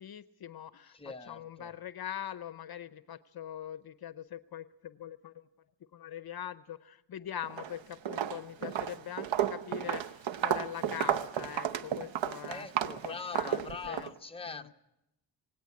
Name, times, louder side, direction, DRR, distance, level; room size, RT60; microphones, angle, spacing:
voice 1, 0.0-5.5 5.9-14.1 14.4-14.7, left 10 dB, 55° left, 14 dB, 0.7 m, -43 dB
voice 2, 0.9-1.7 12.5-14.7, left 4 dB, 10° left, 5 dB, 0.9 m, -43 dB
Walk footsteps, 7.4-7.7 8.0-14.1, right 10 dB, 80° right, 0.9 m, -32 dB
18.5 x 17.0 x 9.4 m, 0.89 s
wide cardioid pair, 110°, 45 cm